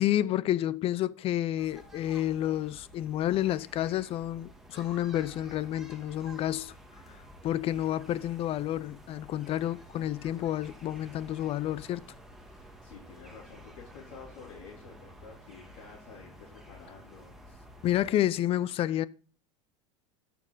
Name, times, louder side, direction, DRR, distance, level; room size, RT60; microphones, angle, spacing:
voice 1, 0.0-6.7 7.1-7.2 7.4-12.0 17.8-19.1, left 12 dB, 40° left, 0.5 m, -30 dB
sound 1, 1.6-18.1, equal, ahead, 1.9 m, -52 dB
voice 2, 12.4-17.6, left 5 dB, 70° left, 3.6 m, -50 dB
13.5 x 7.0 x 4.1 m
supercardioid pair, 120°, 16 cm